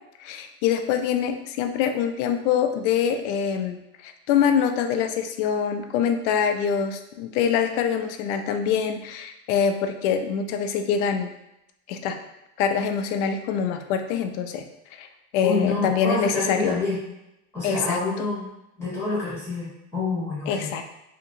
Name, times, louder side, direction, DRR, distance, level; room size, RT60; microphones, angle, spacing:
voice 1, 0.2-11.3 11.9-12.2 12.6-14.6 14.9-15.1 15.3-16.8 17.6-18.0 20.5-20.8, left 7 dB, 80° left, 6 dB, 0.5 m, -24 dB
voice 2, 15.4-17.0 17.5-18.5 18.8-20.7, left 3 dB, 5° left, -10 dB, 1.0 m, -27 dB
2.9 x 2.8 x 2.6 m, 0.89 s
cardioid pair, 150°, 35 cm